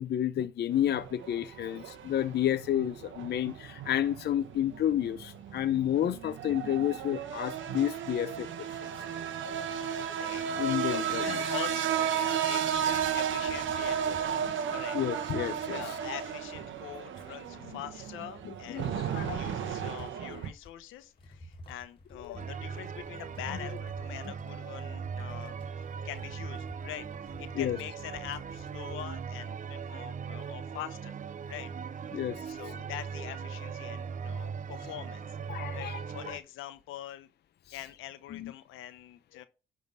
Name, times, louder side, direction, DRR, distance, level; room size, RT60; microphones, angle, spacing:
voice 1, 0.0-8.9 10.6-11.4 14.9-15.8 18.4-19.4 22.2-22.4 23.6-23.7 27.5-27.8 32.1-32.5 35.5-36.0 36.2-36.3 37.7-37.8 38.3-38.5 39.4-39.5, left 11 dB, 55° left, 0.6 m, -31 dB
sound 1, 0.7-20.5, right 8 dB, 75° right, 1.1 m, -34 dB
voice 2, 9.8-15.0 15.6-27.1 27.4-31.2 31.5-31.7 32.5-35.4 35.7-37.3 37.7-39.5, left 12 dB, 90° left, 0.9 m, -44 dB
sound 2, 12.6-15.0 15.3-17.1 17.5-17.7 18.0-18.4 18.6-29.2, left 2 dB, 25° left, 2.0 m, -53 dB
sound 3, 22.4-36.4, right 6 dB, 40° right, 0.5 m, -39 dB
10.5 x 3.8 x 5.3 m
cardioid pair, 90°, 20 cm